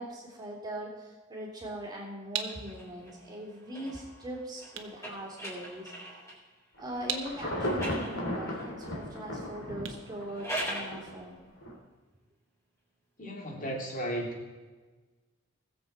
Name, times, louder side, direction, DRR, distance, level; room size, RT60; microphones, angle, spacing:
voice 1, 0.0-5.9 6.8-11.4, right 1 dB, 20° right, -2 dB, 3.2 m, -40 dB
sound 1, 1.7-11.1, right 8 dB, 70° right, 1.2 m, -43 dB
sound 2, 2.5-6.5 7.3-8.7 10.1-11.0, right 1 dB, 15° left, 4.2 m, -41 dB
Insect / Thunder / Rain, 6.8-11.1 11.6-11.7, left 1 dB, 75° left, 3.2 m, -35 dB
voice 2, 13.2-14.4, right 1 dB, 40° left, 0 dB, 2.7 m, -35 dB
20.0 x 7.6 x 4.3 m, 1.3 s
head